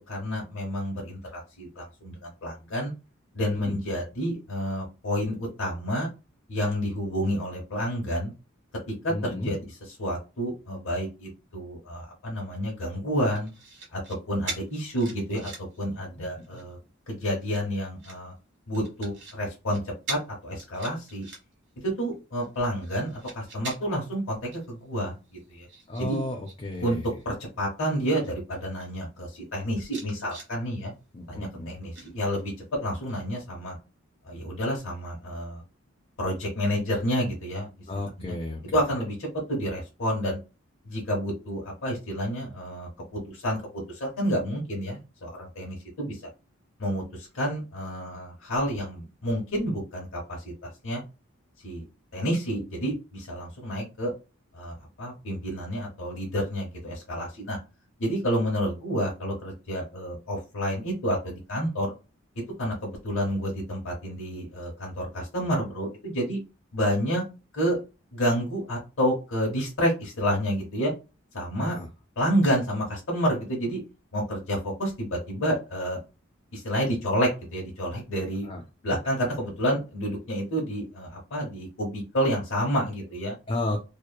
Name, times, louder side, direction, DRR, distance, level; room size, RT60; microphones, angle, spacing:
voice 1, 0.0-2.9 3.3-6.1 6.5-8.3 9.0-13.5 13.9-14.0 14.3-15.5 15.8-16.8 17.1-18.3 18.7-19.8 20.1-21.2 21.8-25.1 25.5-25.7 26.0-26.2 26.8-27.0 27.2-30.9 31.3-31.4 31.7-32.5 32.8-33.8 34.2-35.6 36.2-37.7 38.0-38.1 38.7-40.4 40.8-46.3 46.8-51.0 51.6-51.8 52.1-54.1 54.5-57.6 58.0-61.9 62.6-66.4 66.7-67.2 67.5-67.8 68.1-70.9 71.3-71.8 72.2-73.8 74.1-76.0 76.5-78.5 78.8-83.3, equal, 75° left, -2 dB, 0.9 m, -29 dB
voice 2, 9.1-9.5 25.9-27.1 31.1-31.7 37.9-38.8 71.6-71.9 78.4-78.6 83.5-83.8, left 1 dB, 30° left, 0 dB, 0.4 m, -32 dB
sound 1, 13.3-14.2 14.5-15.8 16.2-16.7 17.3-18.2 18.7-19.4 19.7-19.8 20.1-20.3 20.6-21.7 22.1-24.1 24.5-24.7 25.0-26.6 26.8-27.2 27.9-28.0 28.2-28.9 29.4-29.5 29.8-30.5 31.9-32.6 33.1-33.2, right 3 dB, 60° right, 0.9 m, -41 dB
2.9 x 2.1 x 2.2 m, 0.30 s
head